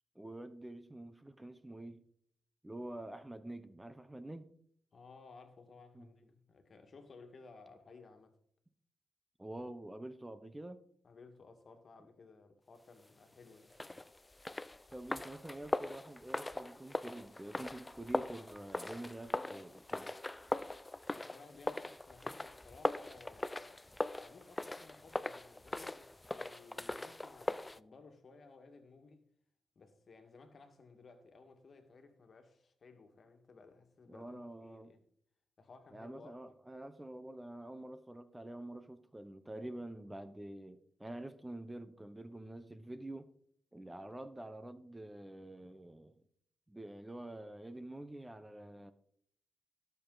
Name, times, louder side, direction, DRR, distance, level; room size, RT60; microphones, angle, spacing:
voice 1, 0.1-2.0 2.6-4.5 5.9-6.1 9.4-10.8 14.9-20.1 34.1-34.9 35.9-43.3 43.7-46.2 46.7-48.9, right 1 dB, 15° right, 0.8 m, -47 dB
voice 2, 4.9-8.4 11.0-13.7 21.1-23.8 24.2-29.2 29.8-35.0 35.6-36.6, left 4 dB, 50° left, 1.8 m, -58 dB
sound 1, 13.7-27.8, left 2 dB, 15° left, 0.4 m, -40 dB
17.0 x 6.9 x 4.0 m
cardioid pair, 80°, 0 cm